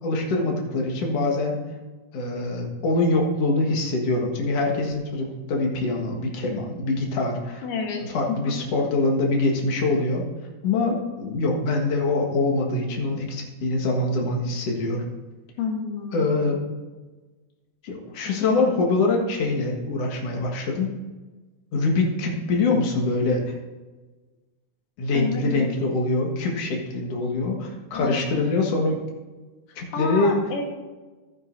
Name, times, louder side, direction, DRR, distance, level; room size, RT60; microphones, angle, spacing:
voice 1, 0.0-1.6 2.1-7.6 8.0-10.2 10.6-15.0 16.1-16.6 17.8-20.9 21.7-23.5 25.0-28.9 29.8-30.4, left 2 dB, 50° left, 0 dB, 2.3 m, -24 dB
voice 2, 7.6-8.0 8.3-8.6 15.6-16.3 18.2-18.5 25.1-25.7 27.9-28.2 29.9-30.7, left 5 dB, 70° left, 1 dB, 3.0 m, -29 dB
14.5 x 9.6 x 2.7 m, 1.3 s
omnidirectional pair, 4.2 m